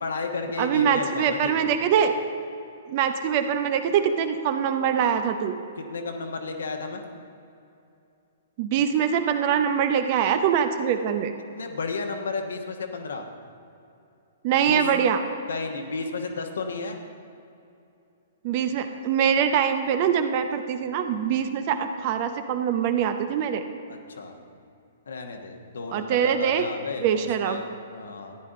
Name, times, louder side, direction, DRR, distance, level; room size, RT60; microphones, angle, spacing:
voice 1, 0.0-1.7 5.8-7.0 11.5-13.2 14.7-14.8 15.5-17.0 23.9-24.4 25.1-28.4, left 4 dB, 65° left, 4 dB, 1.2 m, -33 dB
voice 2, 0.6-2.1 2.9-5.6 8.6-11.3 14.4-15.2 18.4-23.6 25.9-26.6 27.0-27.6, right 8 dB, 40° right, 8 dB, 0.7 m, -23 dB
14.0 x 10.0 x 3.8 m, 2.6 s
figure-of-eight pair, 115°, 0 cm